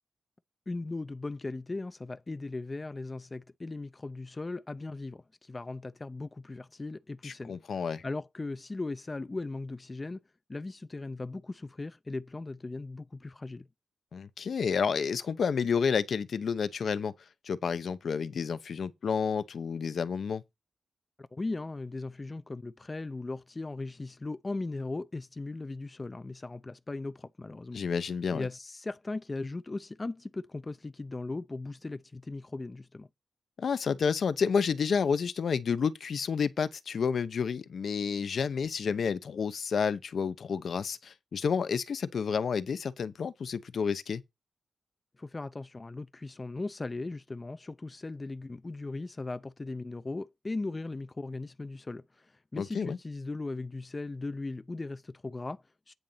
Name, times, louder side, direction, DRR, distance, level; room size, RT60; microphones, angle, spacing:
voice 1, 0.7-10.2 10.5-13.7 21.2-27.8 28.3-33.1 45.2-55.9, left 3 dB, 25° left, 0.4 m, -38 dB
voice 2, 7.2-8.0 14.1-17.1 17.4-20.4 27.7-28.5 33.6-44.2 52.5-53.0, left 6 dB, 65° left, 0.8 m, -30 dB
9.1 x 3.9 x 7.1 m
wide cardioid pair, 115°, 0 cm